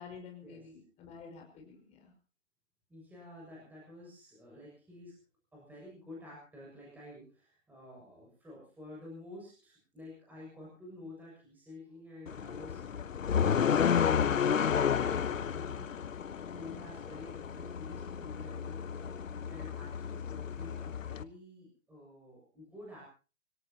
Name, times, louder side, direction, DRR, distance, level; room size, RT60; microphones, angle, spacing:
voice 1, 0.0-2.1, left 5 dB, 15° left, 2 dB, 5.1 m, -50 dB
voice 2, 2.9-5.1 5.5-16.0 16.3-23.0, left 1 dB, 5° right, -5 dB, 6.8 m, -50 dB
sound 1, 12.3-21.2, left 7 dB, 75° left, 1.0 m, -32 dB
25.0 x 18.0 x 2.9 m, 0.36 s
hypercardioid pair, 155°, 39 cm